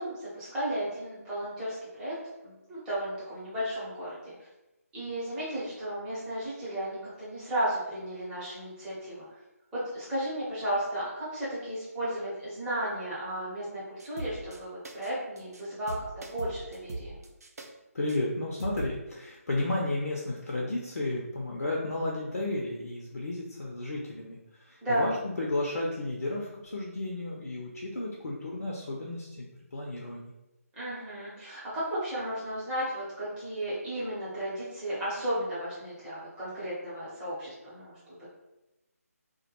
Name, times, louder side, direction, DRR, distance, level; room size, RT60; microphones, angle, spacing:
voice 1, 0.0-2.1 2.4-4.3 4.9-9.2 9.7-17.2 24.8-25.0 30.8-37.9 38.2-38.3, right 1 dB, 10° right, -11 dB, 0.7 m, -34 dB
sound 1, 14.0-14.6 14.8-15.1 15.4-15.6 15.9-17.7 18.1-18.2 18.6-18.9, right 2 dB, 75° right, 0.4 m, -40 dB
voice 2, 17.9-29.5 29.7-30.3, left 2 dB, 75° left, -3 dB, 0.5 m, -33 dB
2.2 x 2.1 x 2.8 m, 0.96 s
figure-of-eight pair, 155°, 9 cm